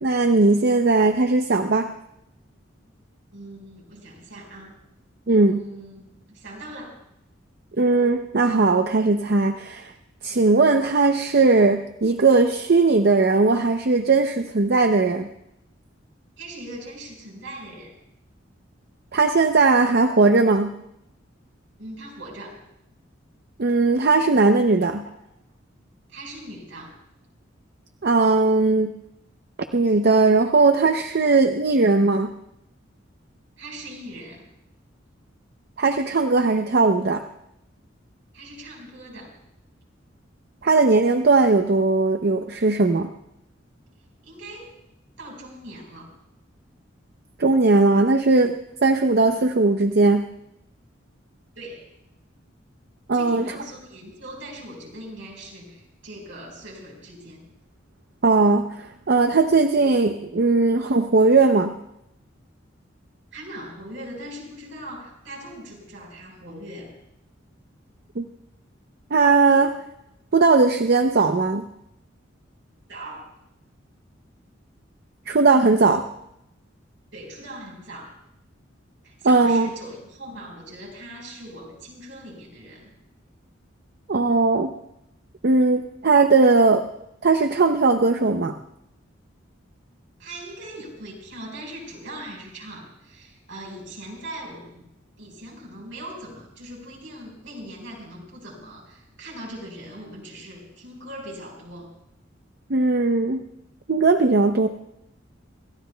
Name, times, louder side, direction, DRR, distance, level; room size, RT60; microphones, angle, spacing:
voice 1, 0.0-1.9 5.3-5.6 7.8-9.9 10.2-15.3 19.1-20.7 23.6-25.0 28.0-28.9 29.7-32.3 35.8-37.2 40.6-43.1 47.4-48.6 48.8-50.3 53.1-53.5 58.2-61.7 68.2-68.3 69.1-69.7 70.3-71.6 75.3-76.0 79.2-79.7 84.1-84.7 85.4-86.9 87.2-88.5 102.7-103.4 103.9-104.7, right 3 dB, 55° right, 6 dB, 0.6 m, -18 dB
voice 2, 3.3-4.7 5.3-6.0 6.3-7.0 16.4-17.9 21.8-22.6 26.1-27.0 33.6-34.5 38.3-39.3 44.2-44.7 45.2-46.1 51.5-51.9 53.1-57.4 63.3-66.9 72.9-73.3 77.1-78.1 79.0-82.9 90.2-94.8 95.2-101.9, right 1 dB, 75° right, -1 dB, 4.8 m, -40 dB
27.5 x 14.5 x 2.2 m, 0.82 s
head